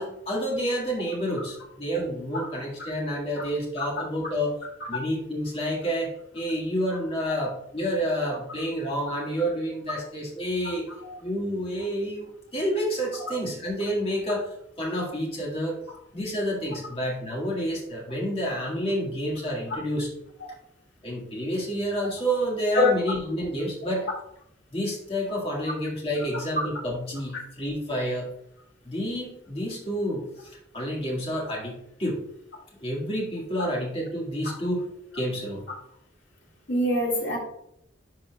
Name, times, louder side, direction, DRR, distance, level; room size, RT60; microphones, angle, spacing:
voice 1, 0.0-4.6 4.9-10.9 11.2-15.8 16.1-20.1 21.0-24.1 24.7-28.3 28.9-32.2 32.8-34.8 35.1-35.6, equal, 30° left, -3 dB, 1.9 m, -29 dB
voice 2, 36.7-37.4, left 1 dB, 80° left, -3 dB, 2.2 m, -23 dB
10.5 x 4.3 x 2.4 m, 0.75 s
head